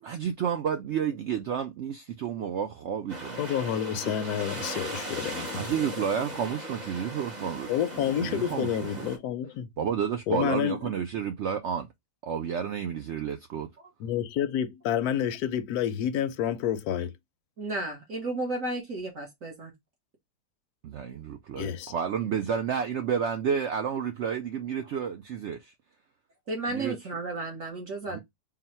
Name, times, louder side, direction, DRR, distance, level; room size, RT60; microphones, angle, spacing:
voice 1, 0.0-3.7 5.5-9.1 9.8-11.9 12.2-13.7 20.8-25.7 26.7-27.0 28.1-28.2, right 7 dB, 75° right, 0.6 m, -31 dB
sound 1, 3.1-9.2, right 1 dB, 30° right, 1.3 m, -38 dB
voice 2, 3.4-5.9 7.7-9.7 10.3-10.8 14.0-17.1 21.6-21.9, left 9 dB, 75° left, 1.1 m, -29 dB
voice 3, 17.6-19.7 26.5-28.2, right 2 dB, 55° right, 1.5 m, -33 dB
3.8 x 2.2 x 4.2 m
omnidirectional pair, 1.7 m